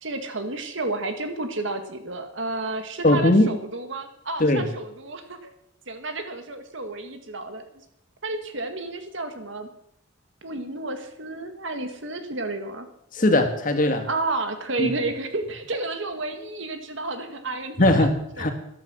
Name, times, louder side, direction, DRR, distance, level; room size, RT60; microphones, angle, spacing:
voice 1, 0.0-5.5 5.9-7.7 8.2-9.7 10.4-12.9 14.0-18.1 18.4-18.5, right 2 dB, 65° right, 7 dB, 1.9 m, -31 dB
voice 2, 3.0-3.5 4.4-4.7 13.1-14.1 14.8-14.9 17.8-18.5, left 1 dB, 40° left, 6 dB, 1.8 m, -19 dB
14.0 x 11.5 x 6.3 m, 0.76 s
head